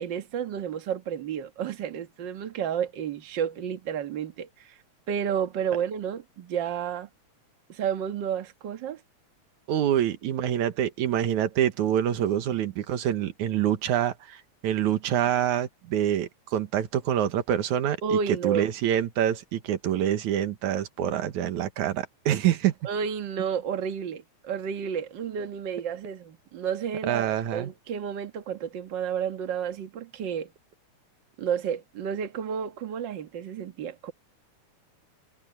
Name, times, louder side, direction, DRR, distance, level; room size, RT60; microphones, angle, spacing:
voice 1, 0.0-4.8 5.1-7.1 7.7-9.0 18.0-18.7 22.8-27.3 27.5-30.5 31.4-34.1, right 8 dB, 45° right, 1.8 m, -31 dB
voice 2, 9.7-18.2 18.4-22.7 27.1-27.7, right 10 dB, 80° right, 2.7 m, -26 dB
omnidirectional pair, 3.4 m